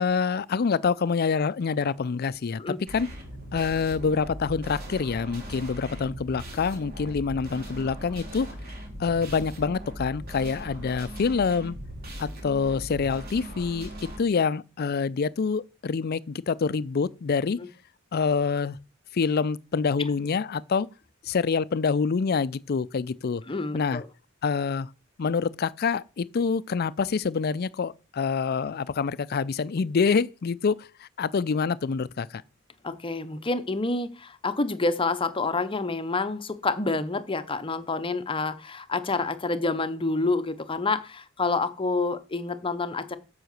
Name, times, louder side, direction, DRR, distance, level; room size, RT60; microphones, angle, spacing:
voice 1, 0.0-2.6 2.9-3.1 3.5-8.5 9.0-11.7 12.2-13.9 14.2-17.6 18.1-18.8 19.1-20.9 21.3-23.4 23.7-24.0 24.4-24.9 25.2-30.8 31.2-32.3, left 5 dB, 50° left, 0.4 m, -26 dB
sound 1, 2.9-14.2, equal, 50° right, 3.6 m, -39 dB
voice 2, 23.5-24.1 32.8-43.2, left 3 dB, 25° left, 0.8 m, -28 dB
7.8 x 5.6 x 6.6 m
head